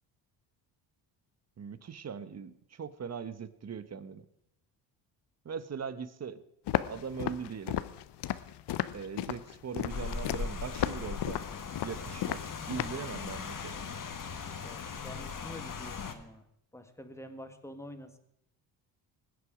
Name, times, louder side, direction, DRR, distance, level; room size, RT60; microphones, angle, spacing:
voice 1, 1.6-4.2 5.4-6.4 6.9-7.8 8.9-11.4 11.8-13.8, right 6 dB, 35° right, 14 dB, 1.0 m, -40 dB
Walk footsteps, 6.7-13.0, left 13 dB, 60° left, 0.7 m, -34 dB
Rain, 9.9-16.1, left 5 dB, 40° left, 1.6 m, -39 dB
voice 2, 14.6-16.4 16.7-18.2, left 1 dB, 5° left, 7 dB, 1.6 m, -47 dB
20.5 x 8.4 x 4.9 m, 0.80 s
cardioid pair, 85°, 48 cm